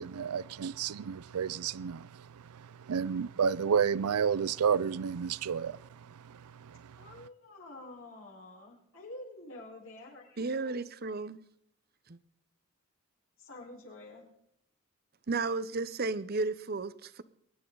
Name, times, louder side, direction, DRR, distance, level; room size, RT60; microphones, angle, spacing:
voice 1, 0.0-7.2, right 7 dB, 90° right, 0.4 m, -32 dB
voice 2, 7.0-10.4 10.6-10.7 13.4-14.3, left 2 dB, 65° left, 4.6 m, -48 dB
voice 3, 10.4-11.4 12.1-12.2 15.3-17.2, right 3 dB, 45° right, 0.7 m, -33 dB
23.0 x 11.5 x 3.9 m
head